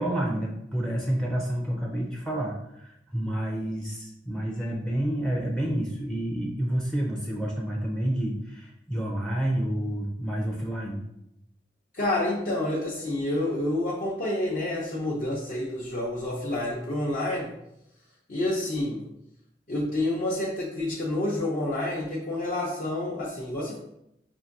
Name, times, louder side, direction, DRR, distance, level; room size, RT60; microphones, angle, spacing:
voice 1, 0.0-11.0, right 1 dB, 5° left, -1 dB, 0.4 m, -29 dB
voice 2, 11.9-17.5 18.3-19.0 19.7-23.8, left 1 dB, 50° left, -5 dB, 0.6 m, -28 dB
5.4 x 2.6 x 2.6 m, 0.81 s
head